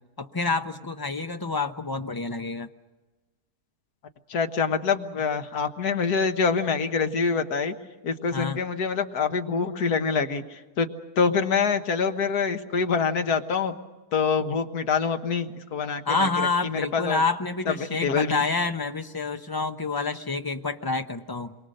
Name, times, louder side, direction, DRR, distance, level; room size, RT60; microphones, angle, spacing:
voice 1, 0.2-2.7 8.3-8.6 16.1-21.6, left 3 dB, 25° left, 7 dB, 0.5 m, -28 dB
voice 2, 4.3-7.7 8.0-10.9 11.2-13.7 14.1-16.3 16.6-17.2 17.7-17.8 18.0-18.4, left 5 dB, 80° left, 7 dB, 1.8 m, -25 dB
28.0 x 23.5 x 6.6 m, 1.2 s
omnidirectional pair, 1.6 m